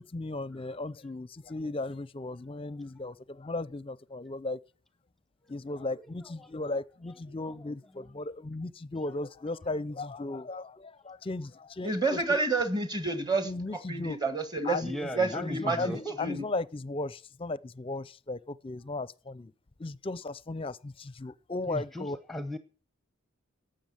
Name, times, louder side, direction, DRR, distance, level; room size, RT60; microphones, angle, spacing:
voice 1, 0.0-4.6 5.5-12.4 13.4-14.2 14.6-19.5 19.8-22.2, left 2 dB, 25° left, 0.6 m, -36 dB
voice 2, 5.9-6.5 7.3-8.1 14.8-16.2 21.7-22.6, equal, ahead, 0.8 m, -39 dB
voice 3, 11.8-13.5 13.9-14.8 15.1-16.5, right 3 dB, 20° right, 1.9 m, -29 dB
12.0 x 7.7 x 8.9 m
head